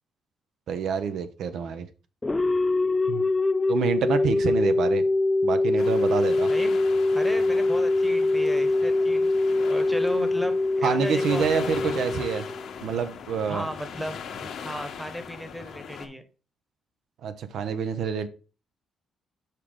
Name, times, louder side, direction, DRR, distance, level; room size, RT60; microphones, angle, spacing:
voice 1, 0.7-1.9 3.1-3.2 3.7-5.1 5.4-6.5 10.8-12.5 12.8-13.6 17.2-18.3, right 7 dB, 70° right, 10 dB, 0.7 m, -27 dB
sound 1, 2.2-12.9, left 2 dB, 20° left, 0.5 m, -23 dB
sound 2, 5.8-16.1, left 6 dB, 70° left, 1.2 m, -40 dB
voice 2, 6.5-6.8 7.1-12.3 13.5-14.2 14.6-16.2, equal, 5° right, 9 dB, 1.1 m, -35 dB
6.7 x 4.9 x 3.7 m, 0.35 s
cardioid pair, 90°, 0 cm